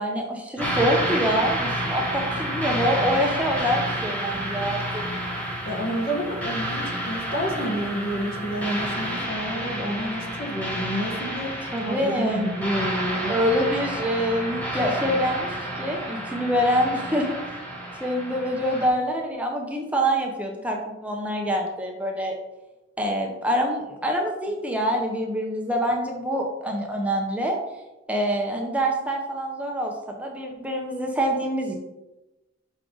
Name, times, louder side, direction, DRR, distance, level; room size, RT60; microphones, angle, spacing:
voice 1, 0.0-5.0 11.7-12.4 13.3-17.3 18.0-22.4 23.0-27.6 28.1-31.8, equal, 5° right, 1 dB, 0.6 m, -25 dB
sound 1, 0.6-18.9, right 1 dB, 10° left, 1.2 m, -30 dB
voice 2, 5.6-13.3, equal, 50° left, 0 dB, 1.3 m, -29 dB
6.3 x 4.8 x 3.8 m, 1.0 s
head